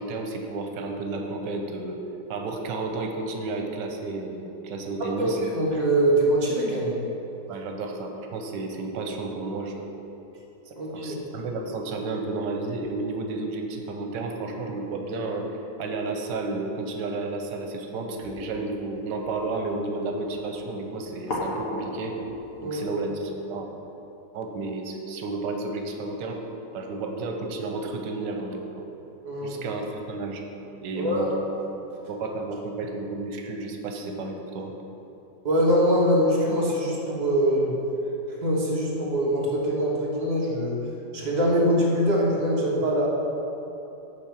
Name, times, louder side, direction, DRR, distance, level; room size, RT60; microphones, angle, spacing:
voice 1, 0.0-2.0 2.3-5.4 7.5-10.0 10.7-15.5 15.8-22.2 22.6-23.7 24.3-26.4 26.7-28.8 29.4-30.4 30.8-31.3 31.8-34.7, right 3 dB, 85° right, 3 dB, 1.4 m, -32 dB
voice 2, 5.5-7.0 10.7-11.2 22.6-22.8 29.2-29.6 30.9-31.4 35.4-37.7 38.4-40.8 41.1-43.1, equal, 25° right, -4 dB, 1.3 m, -23 dB
sound 1, 18.2-23.2, left 1 dB, 50° left, 1.6 m, -37 dB
9.4 x 3.8 x 7.1 m, 3.0 s
omnidirectional pair, 1.9 m